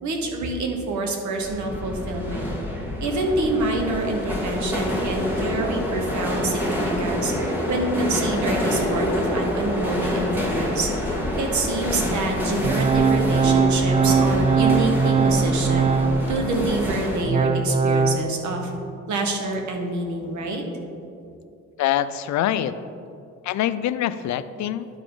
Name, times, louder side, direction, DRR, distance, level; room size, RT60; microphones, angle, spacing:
voice 1, 0.0-2.5 3.0-7.3 7.7-15.9 16.3-18.7 19.1-20.6, right 2 dB, 70° right, 2 dB, 1.3 m, -27 dB
sound 1, 1.4-17.2, left 1 dB, 5° right, 1.6 m, -27 dB
Organ, 12.6-16.4 16.9-18.2, right 5 dB, 25° right, 0.4 m, -20 dB
voice 2, 21.8-22.7 23.4-24.9, left 11 dB, 70° left, 13 dB, 0.5 m, -24 dB
11.5 x 4.8 x 3.9 m, 2.6 s
cardioid pair, 90°, 30 cm